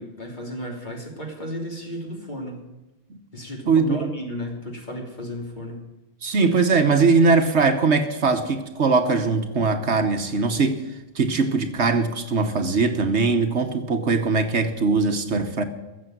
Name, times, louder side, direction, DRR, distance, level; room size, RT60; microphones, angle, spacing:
voice 1, 0.0-2.7 3.3-5.9, equal, 35° left, 0 dB, 3.1 m, -34 dB
voice 2, 3.7-4.1 6.2-10.8 11.1-15.6, right 4 dB, 60° right, 7 dB, 1.3 m, -21 dB
15.0 x 7.4 x 9.2 m, 1.1 s
omnidirectional pair, 1.3 m